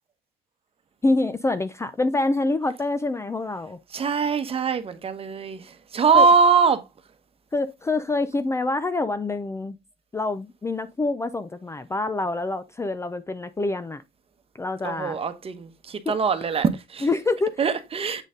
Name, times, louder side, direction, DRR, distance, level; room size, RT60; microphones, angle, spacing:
voice 1, 1.0-3.8 6.1-6.3 7.5-9.8 10.1-14.0 14.6-15.2 16.1-16.2 17.0-17.6, left 2 dB, 15° left, 0.5 m, -26 dB
voice 2, 3.9-6.8 14.8-17.1 17.6-18.2, right 5 dB, 35° right, 1.0 m, -22 dB
8.1 x 4.0 x 3.7 m
cardioid pair, 110°, 17 cm